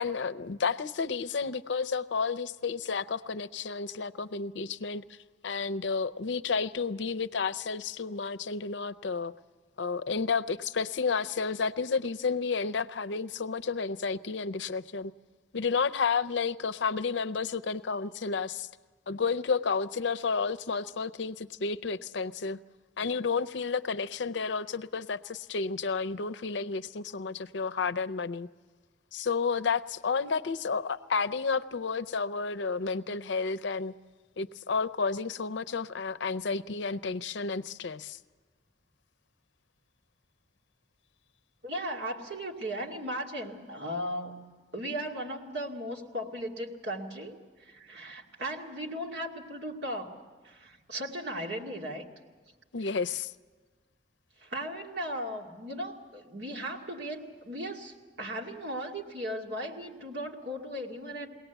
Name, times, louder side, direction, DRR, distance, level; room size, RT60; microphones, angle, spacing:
voice 1, 0.0-5.0 5.4-9.3 9.8-15.1 15.5-18.7 19.1-22.6 23.0-28.5 29.1-33.9 34.4-38.2 52.7-53.3, left 5 dB, 75° left, 15 dB, 0.6 m, -31 dB
voice 2, 41.6-44.4 44.7-50.2 50.4-52.0 54.4-61.3, equal, 65° right, 0 dB, 2.3 m, -37 dB
22.0 x 18.0 x 8.1 m, 1.4 s
head